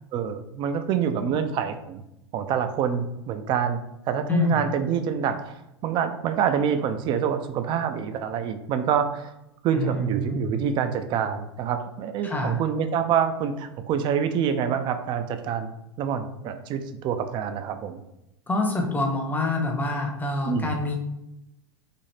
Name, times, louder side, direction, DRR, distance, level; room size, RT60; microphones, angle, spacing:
voice 1, 0.1-2.0 2.3-3.8 4.1-5.5 5.8-9.3 9.6-15.7 16.0-18.0 20.4-20.8, right 7 dB, 35° right, 8 dB, 0.4 m, -26 dB
voice 2, 4.3-4.6 9.7-10.5 12.2-12.6 18.5-21.0, left 2 dB, 10° left, 2 dB, 0.8 m, -26 dB
4.1 x 2.7 x 3.3 m, 0.87 s
figure-of-eight pair, 90°, 14 cm